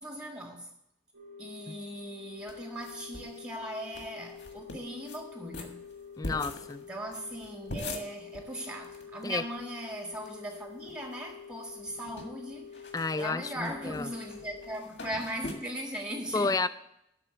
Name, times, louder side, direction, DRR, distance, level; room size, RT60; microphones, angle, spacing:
voice 1, 0.0-0.7 1.4-5.8 6.9-12.7 13.2-16.6, right 1 dB, 20° right, 1.1 m, -39 dB
sound 1, 1.1-14.8, left 6 dB, 85° right, 2.1 m, -48 dB
sound 2, 2.5-3.4 3.6-3.7 3.9-4.1 4.4-5.2 5.5-9.0 9.3-9.4 9.6-10.3 10.7-11.3 11.6-15.5, left 2 dB, 85° left, 1.8 m, -43 dB
voice 2, 6.2-6.8 9.2-9.4 12.9-14.1 16.3-16.7, left 3 dB, 20° left, 0.3 m, -31 dB
12.0 x 4.2 x 8.1 m
head